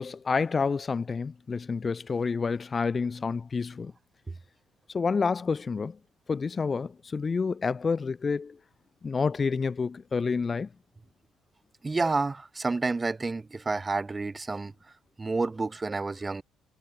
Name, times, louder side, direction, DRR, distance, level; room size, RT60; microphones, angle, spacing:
voice 1, 0.0-3.9 4.9-6.0 6.3-8.6 9.0-10.7, left 5 dB, 35° left, 0.5 m, -29 dB
voice 2, 11.8-14.7 15.2-16.4, right 3 dB, 25° right, 1.1 m, -29 dB
supercardioid pair, 75°, 0 cm